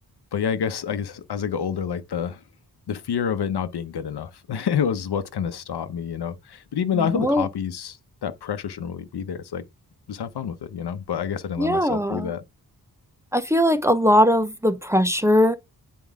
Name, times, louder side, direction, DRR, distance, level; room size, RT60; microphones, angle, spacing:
voice 1, 0.3-2.4 2.9-9.6 10.1-12.4, left 7 dB, 85° left, 0.9 m, -28 dB
voice 2, 6.9-7.4 11.6-12.3 13.3-15.6, equal, 5° right, 0.7 m, -20 dB
9.3 x 4.7 x 3.5 m
wide cardioid pair, 170°, 39 cm